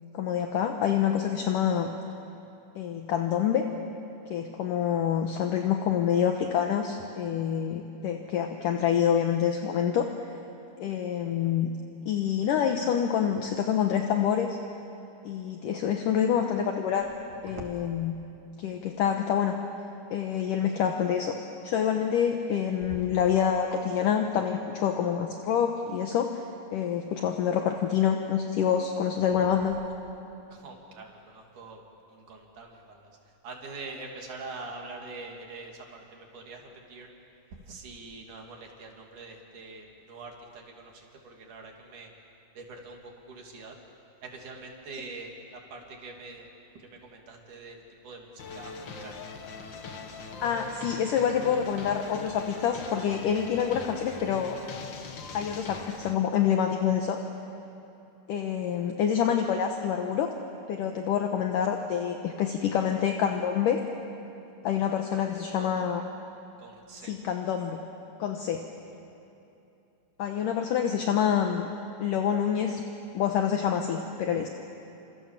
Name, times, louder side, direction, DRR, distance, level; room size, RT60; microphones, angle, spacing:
voice 1, 0.1-1.9 2.8-3.7 4.3-10.1 10.8-11.7 12.1-14.6 15.2-17.1 17.4-18.1 18.6-19.5 20.1-21.3 21.6-26.3 26.7-29.7 50.4-54.6 55.3-57.2 58.3-60.3 60.7-63.8 64.6-66.0 67.0-67.8 68.2-68.6 70.2-71.7 72.0-72.8 73.1-74.5, left 8 dB, 65° left, 4 dB, 2.5 m, -27 dB
voice 2, 17.3-17.6 22.9-23.1 30.5-31.8 32.1-33.1 33.4-37.1 37.5-42.1 42.5-43.8 44.2-46.5 46.8-48.7 49.0-49.3 65.1-65.3 65.6-65.7 66.6-67.1 70.3-70.4, right 3 dB, 55° right, 1 dB, 4.3 m, -44 dB
sound 1, 48.4-56.1, left 4 dB, 80° left, 1.0 m, -41 dB
29.0 x 27.0 x 7.6 m, 2.9 s
omnidirectional pair, 4.6 m